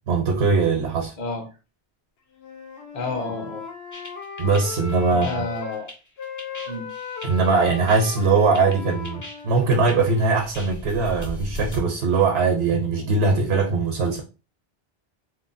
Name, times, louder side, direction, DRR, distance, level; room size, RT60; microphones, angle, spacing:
voice 1, 0.0-1.1 4.4-5.4 7.2-14.2, right 4 dB, 90° right, 0.9 m, -21 dB
voice 2, 1.2-1.5 2.9-3.6 5.1-5.9 6.7-6.9, left 3 dB, 50° left, 0.8 m, -30 dB
Wind instrument woodwind instrument, 2.3-5.8 6.2-10.4, left 6 dB, 85° left, 0.9 m, -37 dB
sound 1, 3.9-11.8, equal, 25° left, 0.4 m, -38 dB
3.1 x 2.2 x 2.5 m
omnidirectional pair, 1.0 m